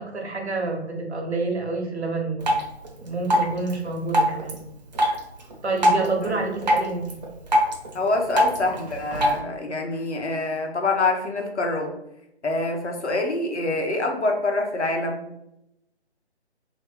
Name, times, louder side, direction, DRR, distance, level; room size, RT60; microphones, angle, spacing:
voice 1, 0.0-2.6 3.0-4.6 5.0-5.2 5.6-7.2, right 3 dB, 75° right, 1 dB, 1.2 m, -28 dB
Drip, 2.4-9.4, equal, 40° right, 1.0 m, -25 dB
voice 2, 7.9-11.9 12.4-15.2, left 2 dB, 80° left, 2 dB, 1.1 m, -25 dB
3.2 x 3.0 x 3.3 m, 0.83 s
figure-of-eight pair, 155°, 34 cm